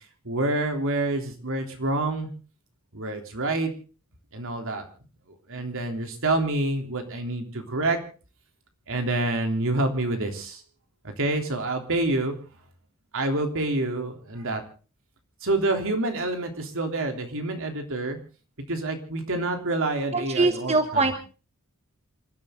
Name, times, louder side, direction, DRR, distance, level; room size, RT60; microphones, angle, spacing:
voice 1, 0.2-2.3 2.9-3.7 4.3-4.8 5.5-8.0 8.9-10.6 11.0-12.3 13.1-14.6 15.4-18.2 18.7-21.1, right 2 dB, 65° right, 5 dB, 3.4 m, -27 dB
voice 2, 20.1-21.2, right 3 dB, 30° right, 7 dB, 1.2 m, -23 dB
28.5 x 12.5 x 3.8 m, 0.36 s
head